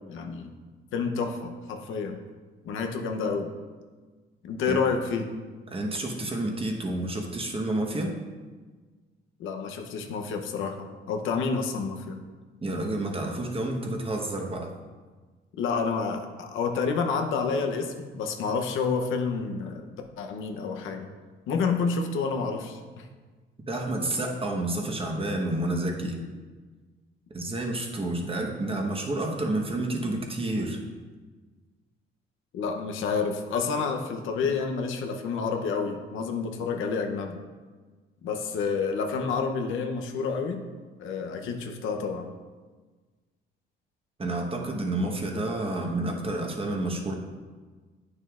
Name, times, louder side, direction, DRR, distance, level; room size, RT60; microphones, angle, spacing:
voice 1, 0.1-0.5 0.9-2.2 2.6-3.5 4.4-5.3 9.4-12.2 15.6-19.9 20.2-21.1 21.5-23.1 32.5-37.4 38.2-40.6 41.0-42.3, left 5 dB, 85° left, 4 dB, 0.8 m, -29 dB
voice 2, 5.7-8.2 12.6-14.7 23.7-26.2 27.3-30.8 44.2-47.1, right 1 dB, 30° right, 1 dB, 1.2 m, -29 dB
9.1 x 6.4 x 2.5 m, 1.4 s
cardioid pair, 90°, 20 cm